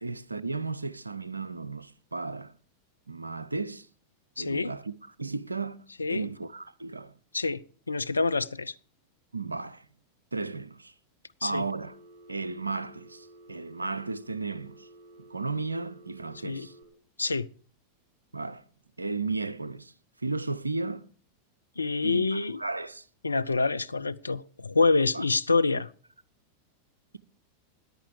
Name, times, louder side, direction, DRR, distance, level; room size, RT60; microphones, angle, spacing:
voice 1, 0.0-2.5 3.1-3.9 4.4-4.9 5.2-7.1 9.3-9.9 10.3-10.9 11.4-12.0 12.3-14.9 15.2-16.7 18.3-18.6 19.0-19.9 20.2-21.1 22.0-23.0 25.1-25.2, right 3 dB, 80° right, 0.6 m, -34 dB
voice 2, 4.4-4.7 6.0-6.3 7.3-7.6 7.9-8.7 11.4-11.6 16.4-16.7 17.2-17.5 21.8-22.6 23.2-25.9, left 3 dB, 80° left, 0.5 m, -26 dB
Telephone, 11.8-16.8, right 1 dB, 50° right, 4.7 m, -53 dB
14.0 x 10.0 x 4.8 m
figure-of-eight pair, 90°, 0 cm